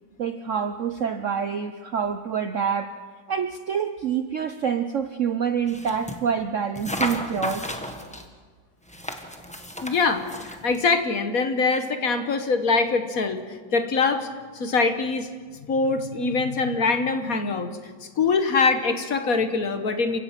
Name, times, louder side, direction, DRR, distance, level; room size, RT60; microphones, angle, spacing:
voice 1, 0.2-2.9 3.3-7.6, right 7 dB, 60° right, 9 dB, 0.8 m, -27 dB
sound 1, 5.7-6.2 6.8-8.3 8.9-10.8, equal, 5° left, 1.2 m, -33 dB
voice 2, 9.8-13.4 13.7-14.3 14.5-15.3 15.7-17.7 18.2-20.2, left 4 dB, 50° left, 8 dB, 1.5 m, -23 dB
28.5 x 16.0 x 5.9 m, 1.5 s
omnidirectional pair, 2.1 m